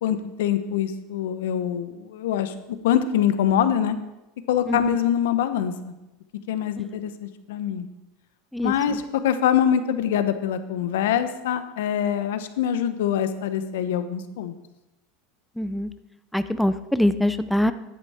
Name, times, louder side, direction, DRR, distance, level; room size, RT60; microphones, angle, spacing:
voice 1, 0.0-2.5 2.8-4.0 4.5-5.9 6.5-7.9 8.6-14.5, left 9 dB, 85° left, 11 dB, 0.9 m, -24 dB
voice 2, 15.6-15.9 16.3-17.7, left 1 dB, ahead, 12 dB, 0.4 m, -23 dB
10.5 x 8.2 x 4.4 m, 0.95 s
supercardioid pair, 135°, 0 cm